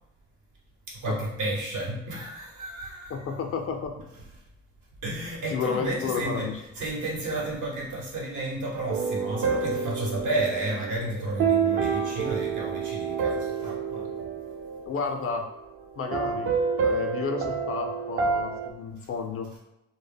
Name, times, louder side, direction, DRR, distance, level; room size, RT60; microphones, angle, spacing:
voice 1, 0.9-3.3 5.0-6.5 6.8-14.1, right 2 dB, 80° right, -3 dB, 1.0 m, -32 dB
voice 2, 3.1-3.9 5.5-6.5 14.9-15.5 16.0-16.5 16.8-19.5, left 5 dB, 50° left, 4 dB, 0.4 m, -31 dB
sound 1, 8.9-15.5 16.1-18.7, right 5 dB, 45° right, 0.4 m, -28 dB
2.1 x 2.0 x 3.3 m, 0.94 s
cardioid pair, 90°, 30 cm